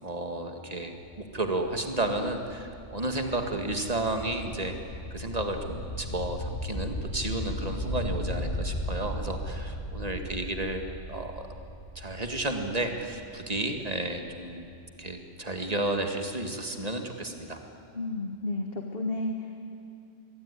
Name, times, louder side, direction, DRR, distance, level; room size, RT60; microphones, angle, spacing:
voice 1, 0.0-10.8 11.1-11.5 12.0-14.6 15.0-17.6, right 2 dB, 30° right, 5 dB, 2.1 m, -32 dB
sound 1, 0.8-14.6, left 1 dB, 90° left, 7.7 m, -37 dB
voice 2, 17.9-19.6, left 2 dB, 50° left, 4 dB, 1.7 m, -32 dB
26.0 x 21.5 x 9.8 m, 2.6 s
omnidirectional pair, 1.3 m